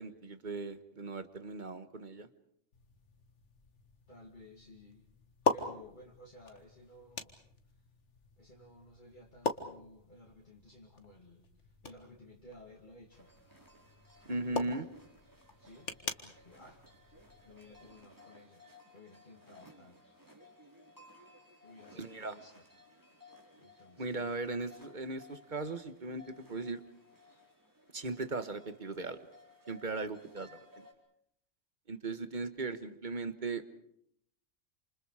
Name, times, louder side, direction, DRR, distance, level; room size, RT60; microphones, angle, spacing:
voice 1, 0.0-2.3 14.3-14.9 21.9-22.3 24.0-26.8 27.9-29.2 29.7-30.8 31.9-33.6, right 3 dB, 40° right, 11 dB, 1.5 m, -38 dB
sound 1, 2.7-17.9, left 4 dB, 65° left, 2.0 m, -42 dB
voice 2, 4.1-5.1 5.5-7.3 7.7-7.8 8.4-13.3 14.3-14.8 15.6-16.8 17.4-18.6 18.9-20.0 21.6-22.7 23.6-24.5, left 1 dB, 40° left, -2 dB, 2.9 m, -56 dB
sound 2, 13.1-30.9, left 2 dB, 15° right, 4.4 m, -59 dB
29.0 x 28.0 x 4.9 m, 0.69 s
omnidirectional pair, 1.3 m